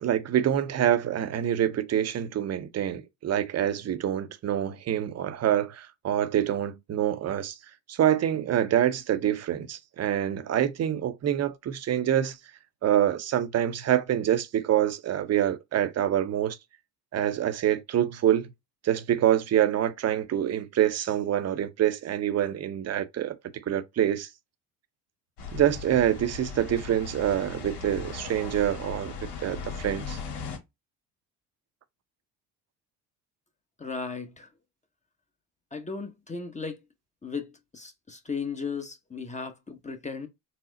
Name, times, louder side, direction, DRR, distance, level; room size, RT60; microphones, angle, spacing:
voice 1, 0.0-7.6 7.9-12.4 12.8-16.6 17.1-18.5 18.8-23.4 23.7-24.3 25.5-29.1 29.4-30.2, right 11 dB, 40° right, 0.7 m, -26 dB
sound 1, 25.4-30.6, left 5 dB, 75° left, 1.5 m, -38 dB
voice 2, 33.8-34.5 35.7-36.8 37.2-40.3, left 5 dB, 15° left, 0.8 m, -36 dB
4.2 x 2.0 x 3.7 m
supercardioid pair, 80°, 40 cm